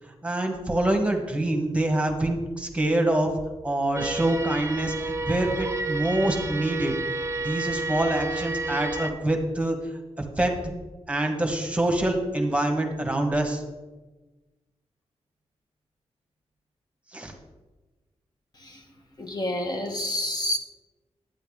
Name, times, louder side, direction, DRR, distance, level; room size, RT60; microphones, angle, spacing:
voice 1, 0.2-3.3 3.6-6.9 7.4-9.8 10.4-10.5 11.1-13.6 17.1-17.3, right 1 dB, 10° right, 3 dB, 1.4 m, -25 dB
sound 1, 3.9-9.1, right 2 dB, 25° right, 0.6 m, -31 dB
voice 2, 19.2-20.6, left 1 dB, 40° left, 2 dB, 1.2 m, -28 dB
11.0 x 9.2 x 3.7 m, 1.2 s
wide cardioid pair, 120°, 11 cm